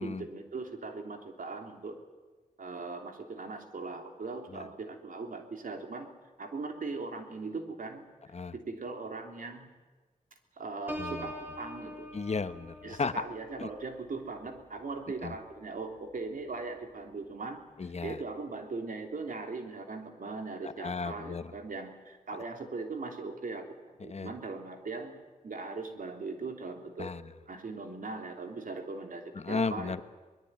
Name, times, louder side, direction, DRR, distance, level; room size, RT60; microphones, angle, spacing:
voice 1, 0.0-2.0 2.6-6.1 6.4-8.0 8.5-9.7 10.6-12.1 12.8-17.6 18.0-23.6 24.0-27.1 27.5-30.0, right 3 dB, 80° right, 4 dB, 3.3 m, -39 dB
Piano, 10.9-16.5 17.0-17.3, equal, 15° right, 3.7 m, -45 dB
voice 2, 12.1-13.1 13.6-13.7 15.2-15.3 17.8-18.2 20.8-21.4 24.1-24.3 27.0-27.2 29.4-30.0, left 4 dB, 50° left, 12 dB, 1.1 m, -34 dB
23.5 x 21.0 x 9.3 m, 1.3 s
wide cardioid pair, 85°, 14 cm